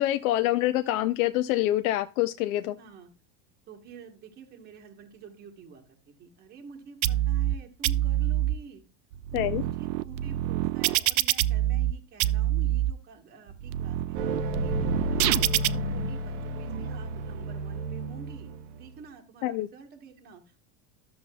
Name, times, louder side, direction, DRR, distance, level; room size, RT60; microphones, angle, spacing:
voice 1, 0.0-2.8 9.3-9.6 19.4-19.7, left 15 dB, 55° left, 9 dB, 0.5 m, -26 dB
voice 2, 2.8-3.1 3.7-8.8 9.3-20.7, right 5 dB, 20° right, 2 dB, 1.2 m, -49 dB
sound 1, 7.0-7.5 7.8-8.5 9.1-11.9 12.2-12.9 13.5-15.7, right 14 dB, 80° right, 0.6 m, -26 dB
sound 2, 14.1-19.0, equal, 40° right, 0.7 m, -32 dB
12.5 x 6.9 x 2.3 m, 0.34 s
supercardioid pair, 170°, 50 cm